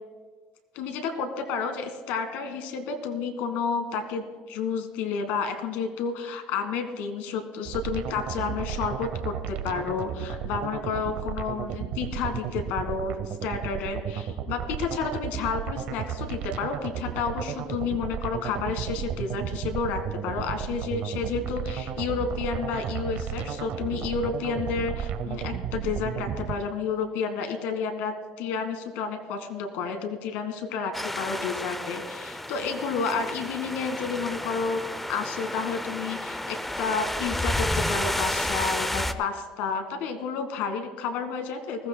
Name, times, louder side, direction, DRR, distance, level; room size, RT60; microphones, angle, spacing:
voice 1, 0.7-34.8 35.1-41.9, left 5 dB, 75° left, 7 dB, 1.6 m, -31 dB
sound 1, 7.7-26.6, right 8 dB, 60° right, 0.8 m, -33 dB
sound 2, 30.9-39.1, left 1 dB, 5° left, 0.5 m, -31 dB
20.5 x 15.0 x 2.2 m, 1.4 s
cardioid pair, 140°, 3 cm